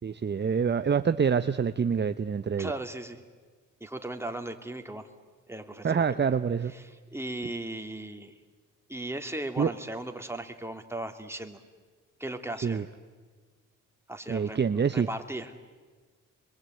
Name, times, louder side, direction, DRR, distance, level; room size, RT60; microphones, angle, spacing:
voice 1, 0.0-2.7 5.8-6.7 9.6-9.7 12.6-12.9 14.3-15.1, right 6 dB, 35° right, 0.8 m, -26 dB
voice 2, 2.6-3.2 3.8-5.1 5.5-6.2 6.7-8.3 8.9-11.6 12.2-12.8 14.1-15.5, right 1 dB, 10° right, 2.8 m, -37 dB
26.5 x 23.0 x 9.3 m
cardioid pair, 60°, 32 cm